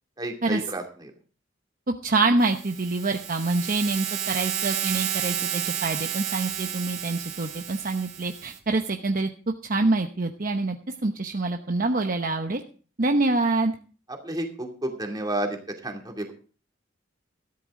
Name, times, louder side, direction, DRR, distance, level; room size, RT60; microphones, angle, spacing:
voice 1, 0.2-1.1 14.1-15.6 15.8-16.3, right 1 dB, 20° right, 2 dB, 2.5 m, -31 dB
voice 2, 2.0-9.3 9.6-10.8 11.0-12.6 13.0-13.7, right 3 dB, 45° right, 4 dB, 0.9 m, -25 dB
sound 1, 2.4-8.6, right 10 dB, 70° right, 2.5 m, -31 dB
14.0 x 12.0 x 3.8 m, 0.39 s
head